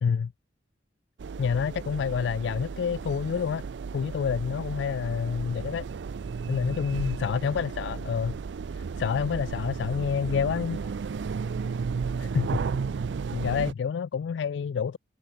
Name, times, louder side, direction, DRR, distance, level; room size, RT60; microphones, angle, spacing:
voice 1, 0.0-0.3 1.4-3.6 3.9-5.9 6.5-8.4 9.0-10.8 12.2-12.6 13.3-15.0, left 6 dB, 75° left, 0.3 m, -28 dB
sound 1, 1.2-13.7, right 5 dB, 75° right, 0.4 m, -34 dB
voice 2, 4.9-5.5 7.2-8.1 10.0-11.9, left 1 dB, 35° left, 7.5 m, -57 dB
head